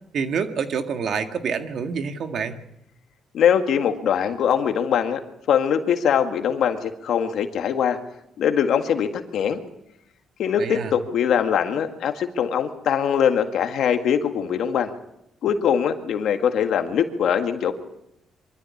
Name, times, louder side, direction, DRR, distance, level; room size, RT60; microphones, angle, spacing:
voice 1, 0.1-2.6 10.6-10.9, right 6 dB, 60° right, 7 dB, 1.9 m, -27 dB
voice 2, 3.3-5.2 5.5-8.0 8.4-9.6 10.4-14.9 15.4-17.7, left 8 dB, 70° left, 6 dB, 1.8 m, -22 dB
24.0 x 14.0 x 8.6 m, 0.84 s
cardioid pair, 90°, 0 cm